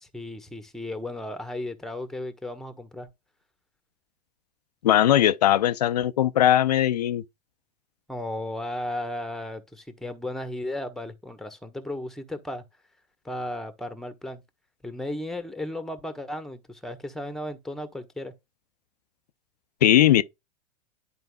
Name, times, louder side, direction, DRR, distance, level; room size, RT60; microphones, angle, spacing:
voice 1, 0.0-3.1 8.1-12.6 13.2-14.4 14.8-18.3, left 1 dB, ahead, 1.1 m, -35 dB
voice 2, 4.8-7.2 19.8-20.2, left 12 dB, 85° left, 0.4 m, -19 dB
11.0 x 4.5 x 2.3 m
hypercardioid pair, 95°, 20 cm